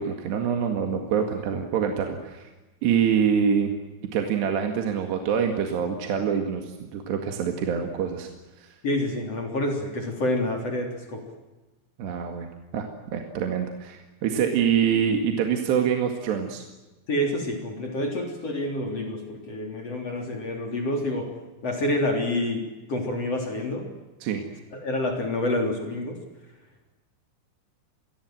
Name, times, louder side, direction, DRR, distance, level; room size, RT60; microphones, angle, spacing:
voice 1, 0.0-2.5 2.8-3.7 4.1-8.3 8.6-8.7 12.0-12.5 12.7-12.9 13.1-16.6 24.2-24.4, right 7 dB, 65° right, 4 dB, 3.9 m, -25 dB
voice 2, 8.8-11.2 14.3-14.4 17.1-21.3 21.6-23.9 24.7-26.2, left 1 dB, 35° left, 2 dB, 3.9 m, -28 dB
27.0 x 22.0 x 7.8 m, 1.1 s
omnidirectional pair, 5.6 m